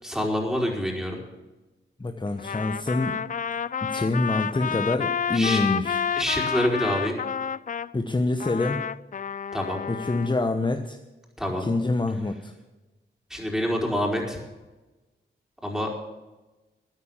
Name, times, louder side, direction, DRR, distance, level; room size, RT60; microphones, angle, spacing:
voice 1, 0.0-1.2 5.3-5.6 6.2-7.2 9.5-9.8 11.4-11.7 13.3-14.4 15.6-15.9, equal, 5° right, 0 dB, 4.8 m, -26 dB
voice 2, 2.0-3.2 3.8-6.0 7.9-8.8 9.9-11.0 11.6-12.5, left 2 dB, 25° left, 6 dB, 1.1 m, -26 dB
Trumpet, 2.4-7.9 8.4-10.3, left 7 dB, 40° left, 0.4 m, -30 dB
14.0 x 9.4 x 7.3 m, 1.1 s
cardioid pair, 60°, 20 cm